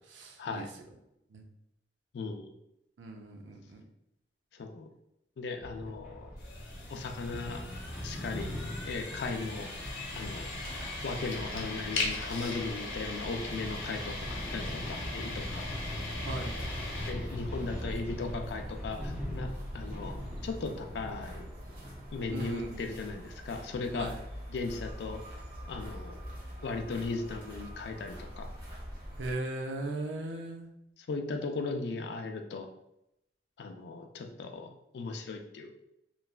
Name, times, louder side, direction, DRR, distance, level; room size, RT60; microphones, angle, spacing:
voice 1, 0.1-0.7 1.3-1.4 3.0-3.8 11.5-11.9 16.2-16.5 22.3-22.8 23.9-24.2 29.2-30.7, right 2 dB, 80° right, 2 dB, 0.5 m, -38 dB
voice 2, 2.1-2.5 4.5-4.9 5.4-6.3 6.9-7.6 8.0-8.5 8.9-9.7 10.1-10.5 11.0-15.7 17.1-19.5 19.7-20.2 20.4-21.4 22.1-24.1 24.5-25.2 25.7-26.2 26.6-28.5 31.1-32.7 33.6-34.7 34.9-35.7, left 3 dB, 70° left, 5 dB, 0.3 m, -37 dB
sound 1, 5.6-23.1, equal, 5° right, 0.6 m, -42 dB
sound 2, 6.4-17.1, left 2 dB, 85° left, 0.8 m, -40 dB
sound 3, 9.8-29.3, equal, 55° right, 1.0 m, -44 dB
3.1 x 2.2 x 2.4 m, 0.84 s
head